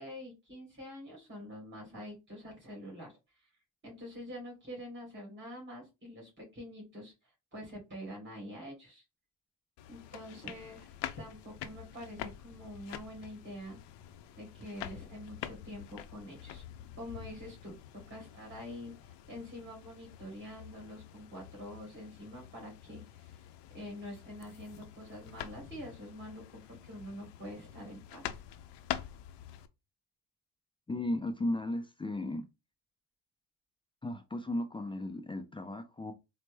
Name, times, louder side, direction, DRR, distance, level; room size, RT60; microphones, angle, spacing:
voice 1, 0.0-3.5 3.8-7.1 7.5-9.0 9.9-13.8 14.4-16.6 17.0-23.4 23.7-28.4, equal, 20° right, 2.4 m, -46 dB
sound 1, 9.8-29.7, left 11 dB, 60° left, 0.6 m, -46 dB
voice 2, 30.9-32.4 34.0-36.1, left 1 dB, 10° left, 0.3 m, -35 dB
4.1 x 2.1 x 3.3 m
supercardioid pair, 80°, 49 cm